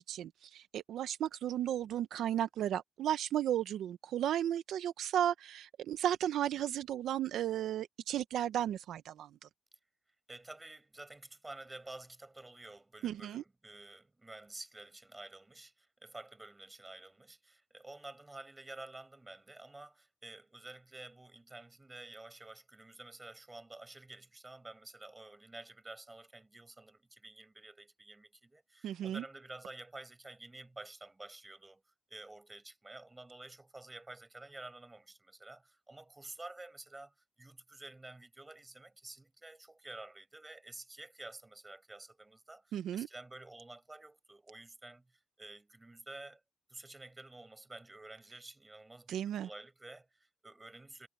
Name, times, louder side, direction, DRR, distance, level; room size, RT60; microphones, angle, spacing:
voice 1, 0.0-9.5 13.0-13.4 28.8-29.2 42.7-43.1 49.1-49.5, right 11 dB, 75° right, 0.8 m, -34 dB
voice 2, 10.3-31.8 32.1-46.4 46.7-51.1, right 2 dB, 15° right, 6.9 m, -51 dB
cardioid pair, 90°, 0 cm